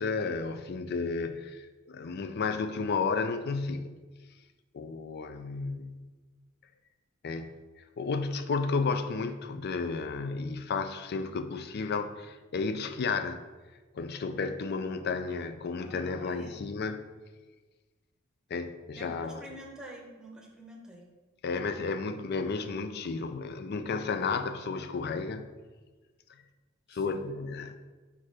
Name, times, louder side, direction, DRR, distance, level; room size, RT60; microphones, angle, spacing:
voice 1, 0.0-3.9 4.7-6.1 7.2-7.6 8.0-13.4 13.9-17.0 18.5-19.4 21.4-25.5 26.9-27.7, left 4 dB, 50° left, 9 dB, 0.4 m, -32 dB
voice 2, 15.8-16.6 18.9-21.1 24.0-24.3 26.9-27.3, equal, 5° right, -1 dB, 0.8 m, -48 dB
4.7 x 4.3 x 4.8 m, 1.3 s
head